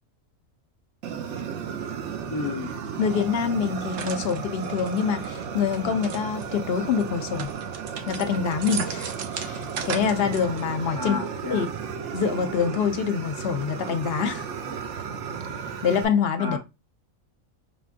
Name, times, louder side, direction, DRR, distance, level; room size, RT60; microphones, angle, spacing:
Fire, 1.0-16.0, right 7 dB, 65° right, 0.9 m, -34 dB
voice 1, 2.3-2.7 10.9-11.7 16.4-16.6, left 3 dB, 20° left, 0.9 m, -31 dB
voice 2, 3.0-7.5 8.1-11.2 11.5-11.7 12.1-14.5 15.8-16.6, left 6 dB, 60° left, 0.7 m, -25 dB
sound 1, 3.9-6.5 7.0-10.8, right 7 dB, 85° right, 1.1 m, -37 dB
5.1 x 2.5 x 2.4 m
omnidirectional pair, 1.4 m